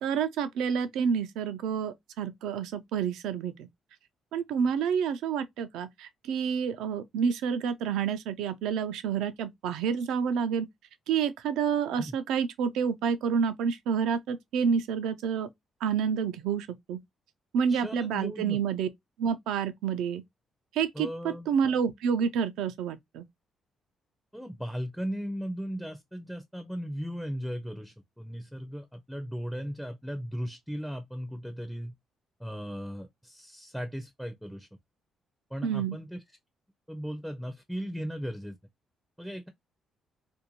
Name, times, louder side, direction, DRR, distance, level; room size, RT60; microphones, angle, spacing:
voice 1, 0.0-3.5 4.3-10.7 11.1-15.5 15.8-17.0 17.5-18.9 19.2-20.2 20.8-21.1 21.5-23.2 35.6-36.0, right 7 dB, 90° right, 0.4 m, -29 dB
voice 2, 17.7-18.6 20.9-21.5 24.3-31.9 32.4-34.7 35.5-36.4 36.9-38.6 39.2-39.5, equal, ahead, 0.4 m, -37 dB
2.5 x 2.2 x 2.8 m
cardioid pair, 90°, 0 cm